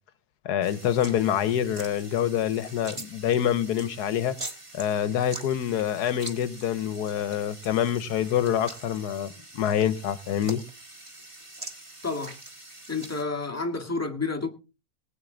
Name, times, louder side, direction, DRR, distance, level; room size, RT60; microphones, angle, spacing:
voice 1, 0.4-4.4 4.7-10.6, left 10 dB, 85° left, 1.4 m, -26 dB
sound 1, 0.6-13.2, right 2 dB, 20° right, 1.4 m, -43 dB
voice 2, 12.9-14.5, left 3 dB, 10° left, 1.6 m, -30 dB
19.0 x 9.2 x 3.8 m
omnidirectional pair, 1.7 m